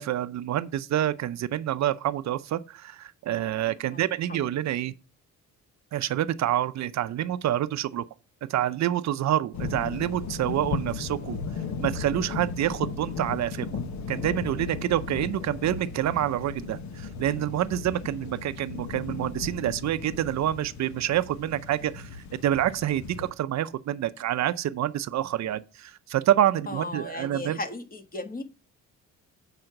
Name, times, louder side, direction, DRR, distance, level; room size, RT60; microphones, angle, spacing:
voice 1, 0.0-4.9 5.9-8.0 8.5-11.4 11.8-13.7 14.1-22.1 22.4-27.6, right 12 dB, 65° right, 0.6 m, -27 dB
sound 1, 9.5-23.3, left 5 dB, 65° left, 1.1 m, -36 dB
voice 2, 26.7-28.4, left 2 dB, 30° left, 1.5 m, -36 dB
7.8 x 4.9 x 5.8 m
cardioid pair, 90°, 30 cm